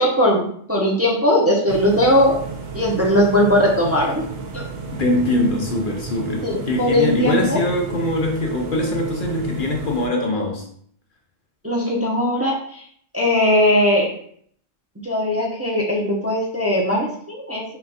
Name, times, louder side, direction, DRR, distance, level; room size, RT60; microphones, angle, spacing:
voice 1, 0.0-2.3 2.7-4.2 4.5-4.6 6.4-7.6 11.6-12.8 13.1-14.1 15.0-17.6, left 1 dB, 15° right, -3 dB, 0.5 m, -19 dB
sound 1, 1.7-10.1, right 4 dB, 65° right, 0.9 m, -33 dB
voice 2, 4.9-10.7, left 1 dB, 60° left, 0 dB, 0.7 m, -22 dB
5.6 x 2.4 x 2.7 m, 0.62 s
omnidirectional pair, 1.2 m